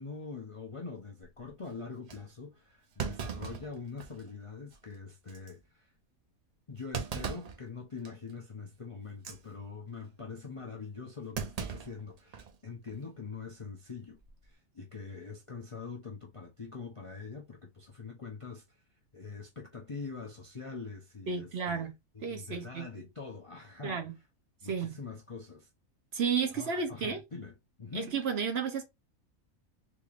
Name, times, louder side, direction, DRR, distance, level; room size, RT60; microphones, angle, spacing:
voice 1, 0.0-5.9 6.7-14.2 14.4-18.8 19.1-21.9 22.1-24.0 24.6-25.7 26.5-28.1, left 4 dB, 40° left, 0.4 m, -44 dB
Thump thud, 1.2-1.5 2.1-2.2 3.0-4.3 4.7-4.8 5.3-5.5 6.9-7.6 8.0-8.3 9.1-9.4 11.3-12.6 12.9-13.0 14.1-14.4, right 6 dB, 80° right, 0.3 m, -38 dB
voice 2, 21.3-21.9 22.2-22.9 23.8-24.1 24.6-24.9 26.1-27.2 27.9-28.8, right 6 dB, 55° right, 0.8 m, -32 dB
3.6 x 3.1 x 2.4 m
omnidirectional pair, 1.4 m